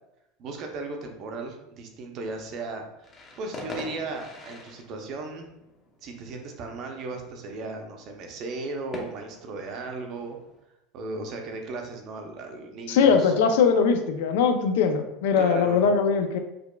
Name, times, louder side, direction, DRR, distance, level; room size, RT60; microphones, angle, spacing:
voice 1, 0.4-3.1 3.4-5.5 6.0-10.4 10.9-13.3 15.4-15.8, right 3 dB, 45° right, 3 dB, 0.6 m, -36 dB
sound 1, 3.0-10.6, left 1 dB, 25° left, 0.7 m, -44 dB
voice 2, 12.9-16.4, left 6 dB, 80° left, 7 dB, 0.4 m, -21 dB
4.9 x 2.3 x 2.2 m, 0.87 s
supercardioid pair, 145°, 0 cm